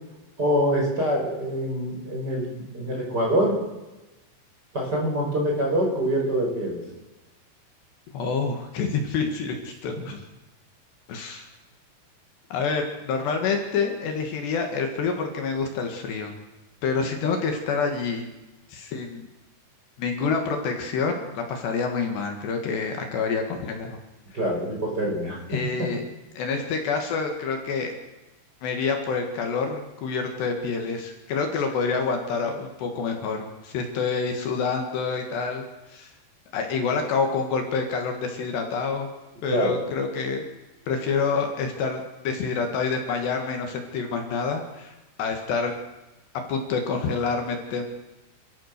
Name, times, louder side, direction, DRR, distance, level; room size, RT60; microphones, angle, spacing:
voice 1, 0.4-3.6 4.7-6.8 24.3-25.9 39.5-39.7, equal, 20° right, -1 dB, 5.2 m, -25 dB
voice 2, 8.1-10.2 11.1-11.5 12.5-16.3 16.8-18.3 18.7-19.2 20.0-24.0 25.5-26.0 26.3-27.9 28.6-36.1 36.5-39.1 39.4-40.4 40.9-45.7 46.3-47.9, left 5 dB, 65° left, 4 dB, 3.7 m, -27 dB
28.0 x 14.0 x 6.7 m, 1.1 s
omnidirectional pair, 5.5 m